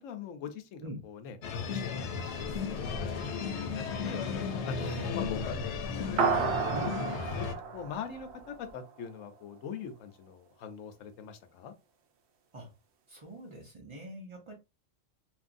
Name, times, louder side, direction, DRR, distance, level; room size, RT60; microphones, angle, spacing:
voice 1, 0.0-4.2 4.6-5.6 6.0-6.9 7.4-7.5 7.7-11.7, left 6 dB, 90° left, 1.0 m, -43 dB
sound 1, 1.4-7.5, left 5 dB, 70° left, 0.8 m, -35 dB
voice 2, 4.8-5.1 6.7-7.0 12.5-12.7 13.1-14.5, right 1 dB, 40° right, 0.4 m, -43 dB
sound 2, 6.2-8.9, right 5 dB, 65° right, 0.8 m, -31 dB
2.9 x 2.6 x 2.5 m
omnidirectional pair, 1.3 m